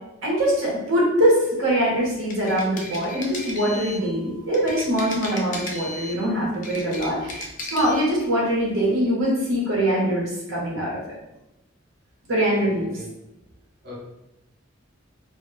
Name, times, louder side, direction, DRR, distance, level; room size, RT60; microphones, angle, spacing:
voice 1, 0.2-7.4 7.7-10.9 12.3-12.9, equal, 80° right, -4 dB, 0.9 m, -23 dB
sound 1, 2.1-4.1 4.5-6.2 6.5-8.1, left 1 dB, 40° left, 0.4 m, -35 dB
voice 2, 6.0-6.2 12.5-12.7 12.9-13.1 13.8-14.0, left 1 dB, 50° right, -7 dB, 0.6 m, -40 dB
2.1 x 2.1 x 3.0 m, 0.92 s
head